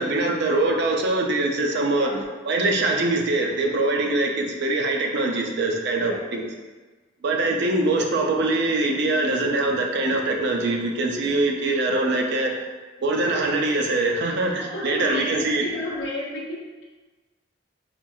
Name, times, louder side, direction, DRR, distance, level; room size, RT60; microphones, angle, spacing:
voice 1, 0.0-2.1 2.5-6.5 7.2-12.5 13.0-15.7, right 2 dB, 60° right, 1 dB, 0.5 m, -23 dB
voice 2, 1.9-2.3 6.1-6.2 14.4-16.8, left 1 dB, 75° left, -3 dB, 0.7 m, -32 dB
4.4 x 2.3 x 2.6 m, 1.3 s
head